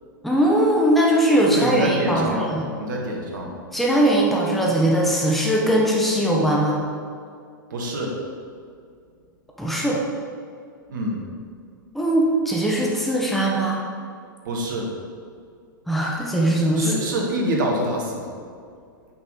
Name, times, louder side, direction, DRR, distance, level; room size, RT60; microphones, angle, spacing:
voice 1, 0.2-2.6 3.7-6.8 9.6-10.0 11.9-13.8 15.9-16.9, right 1 dB, ahead, -3 dB, 1.0 m, -20 dB
voice 2, 1.5-2.5 2.8-3.5 7.7-8.1 10.9-11.3 14.4-14.9 16.8-18.2, right 1 dB, 60° right, -1 dB, 1.6 m, -26 dB
8.1 x 5.7 x 3.9 m, 2.3 s
figure-of-eight pair, 100°, 11 cm